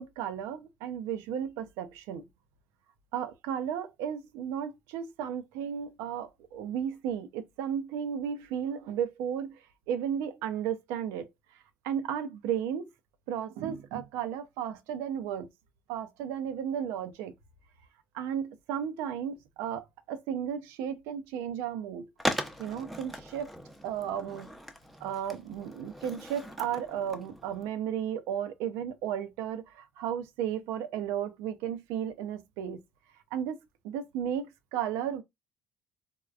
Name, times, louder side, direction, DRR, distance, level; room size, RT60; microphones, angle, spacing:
voice 1, 0.0-2.2 3.1-9.5 9.9-11.3 11.8-12.9 13.3-15.5 15.9-17.3 18.1-22.1 22.6-23.5 23.8-24.5 25.0-32.8 33.3-33.6 33.8-35.2, right 9 dB, 75° right, 0.5 m, -34 dB
Skateboard, 22.2-27.7, equal, ahead, 0.7 m, -38 dB
3.5 x 2.2 x 2.4 m
hypercardioid pair, 55°, 5 cm